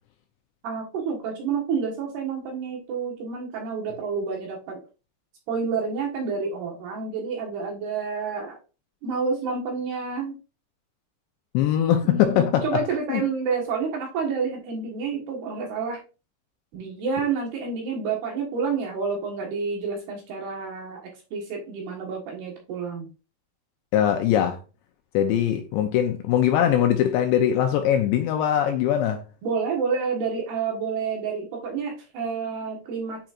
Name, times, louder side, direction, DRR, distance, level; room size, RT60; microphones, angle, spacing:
voice 1, 0.6-4.8 5.5-8.6 9.0-10.3 12.0-16.0 16.7-23.1 29.4-33.3, right 5 dB, 65° right, 3.1 m, -29 dB
voice 2, 11.5-12.7 13.1-13.2 23.9-24.6 25.1-29.2, left 10 dB, 80° left, 2.6 m, -21 dB
9.0 x 4.4 x 2.5 m
omnidirectional pair, 5.6 m